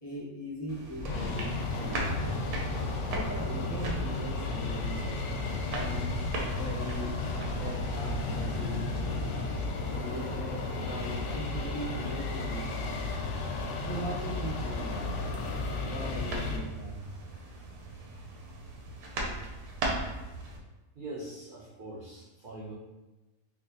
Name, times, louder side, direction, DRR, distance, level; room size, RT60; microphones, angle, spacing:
voice 1, 0.0-2.4 3.1-5.0 5.7-6.1 6.5-7.2 7.5-9.4 9.9-13.2 13.9-15.4 15.9-17.1, right 1 dB, 25° left, -6 dB, 0.5 m, -40 dB
sound 1, 0.7-20.6, right 2 dB, 90° right, 1.2 m, -40 dB
sound 2, 1.0-16.6, left 3 dB, 65° left, 0.8 m, -33 dB
voice 2, 20.9-22.7, right 1 dB, 50° right, -9 dB, 0.6 m, -42 dB
4.4 x 2.0 x 2.6 m, 1.1 s
omnidirectional pair, 1.5 m